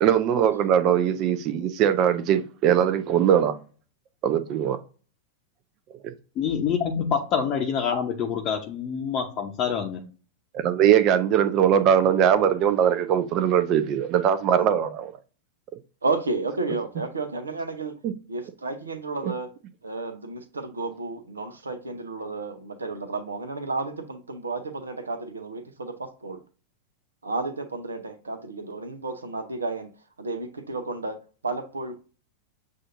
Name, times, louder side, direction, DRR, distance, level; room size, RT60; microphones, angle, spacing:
voice 1, 0.0-3.6 4.2-4.8 10.5-14.9 18.0-18.1, right 9 dB, 40° right, 0.6 m, -21 dB
voice 2, 6.4-10.0, left 7 dB, 35° left, 0.8 m, -26 dB
voice 3, 16.0-17.9 18.3-19.5 19.8-26.4 27.2-29.9 30.2-31.9, right 3 dB, 75° right, 0.7 m, -32 dB
7.6 x 2.6 x 2.5 m
figure-of-eight pair, 90°, 0 cm